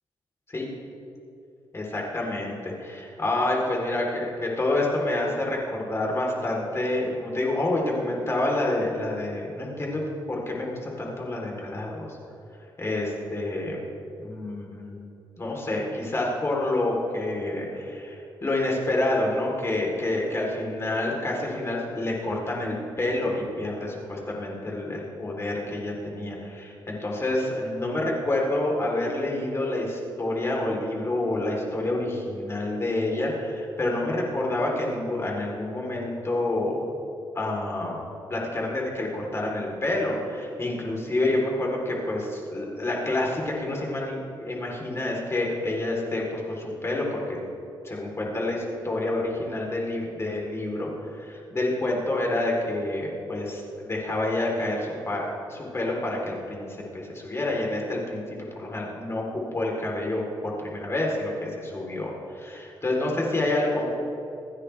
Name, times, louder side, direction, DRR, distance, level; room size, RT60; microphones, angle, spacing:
voice 1, 1.7-12.2 12.8-13.8 14.2-15.0 15.4-36.9 37.4-38.0 38.3-47.4 47.8-63.9, left 2 dB, 30° left, -2 dB, 3.6 m, -28 dB
27.0 x 9.8 x 3.4 m, 2.7 s
cardioid pair, 110°, 9 cm